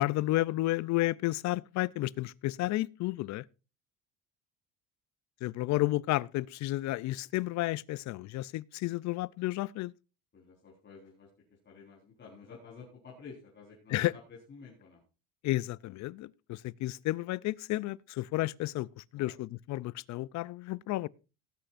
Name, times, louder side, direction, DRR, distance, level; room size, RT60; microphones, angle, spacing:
voice 1, 0.0-3.5 5.4-9.9 13.9-14.1 15.4-21.1, left 17 dB, 60° left, 0.5 m, -32 dB
voice 2, 10.3-11.3 11.6-15.0 19.2-19.3, left 5 dB, 35° left, 4.3 m, -51 dB
18.5 x 10.0 x 2.5 m
cardioid pair, 120°, 32 cm